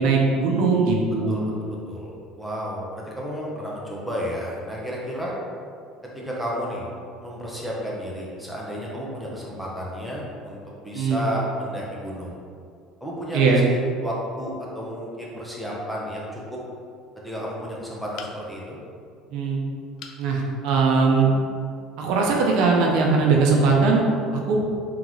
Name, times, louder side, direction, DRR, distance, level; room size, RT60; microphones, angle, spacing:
voice 1, 0.0-1.4 10.9-11.2 13.3-13.6 19.3-19.6 20.2-21.3 22.0-24.1 24.3-24.6, right 4 dB, 75° right, -1 dB, 0.7 m, -20 dB
voice 2, 1.3-5.3 6.1-6.8 7.2-12.4 13.0-16.6 17.2-18.8, equal, ahead, -5 dB, 0.9 m, -32 dB
sound 1, 18.2-18.7 20.0-20.3 20.8-20.9 21.3-21.4, left 6 dB, 65° left, 0.4 m, -41 dB
3.8 x 3.7 x 3.1 m, 2.2 s
cardioid pair, 120°, 0 cm